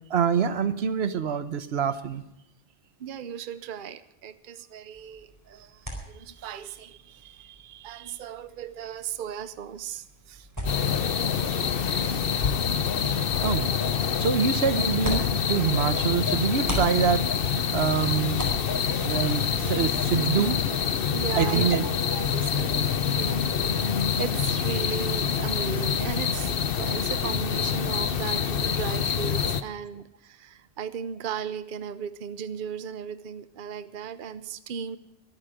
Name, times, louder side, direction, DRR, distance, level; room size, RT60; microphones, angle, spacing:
voice 1, 0.1-2.2 13.4-13.7 14.0-18.5 19.0-20.6 21.4-21.8, right 7 dB, 80° right, 12 dB, 1.1 m, -26 dB
voice 2, 3.0-10.5 10.8-12.2 13.0-13.1 21.1-23.4 23.7-35.0, right 8 dB, 55° right, 13 dB, 0.8 m, -37 dB
sound 1, 4.9-16.1 16.4-19.8, right 1 dB, 20° right, 4.4 m, -40 dB
sound 2, 10.7-29.6, left 7 dB, 65° left, 1.0 m, -26 dB
24.0 x 9.1 x 5.0 m, 0.86 s
omnidirectional pair, 1.1 m